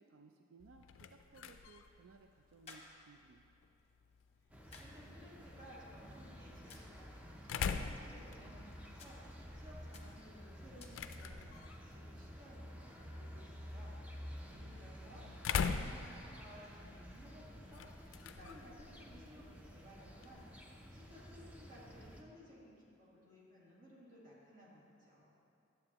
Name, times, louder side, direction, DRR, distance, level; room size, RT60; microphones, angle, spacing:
voice 1, 0.0-3.4 14.4-15.4, right 4 dB, 85° right, 4 dB, 0.4 m, -62 dB
sound 1, 0.6-20.5, left 6 dB, 80° left, 0.4 m, -45 dB
sound 2, 1.4-11.4, left 3 dB, 35° left, 0.8 m, -63 dB
sound 3, 4.5-22.2, equal, 5° right, 0.5 m, -52 dB
voice 2, 4.8-9.2 9.5-15.3 15.6-25.3, equal, 45° right, -7 dB, 2.2 m, -58 dB
11.5 x 7.6 x 2.9 m, 2.6 s
head